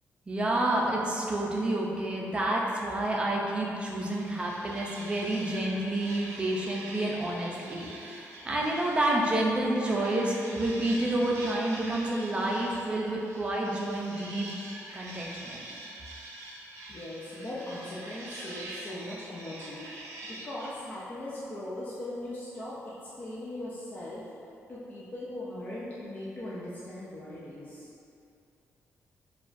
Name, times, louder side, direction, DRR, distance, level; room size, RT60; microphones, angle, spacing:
voice 1, 0.3-14.5 14.9-15.7, right 1 dB, 20° right, -2 dB, 0.5 m, -29 dB
sound 1, 3.8-9.5 9.9-20.7, right 2 dB, 80° right, 0.7 m, -44 dB
voice 2, 16.9-24.2 24.7-28.1, left 1 dB, 30° left, -8 dB, 0.5 m, -40 dB
6.8 x 2.4 x 2.6 m, 2.6 s
wide cardioid pair, 150°, 5 cm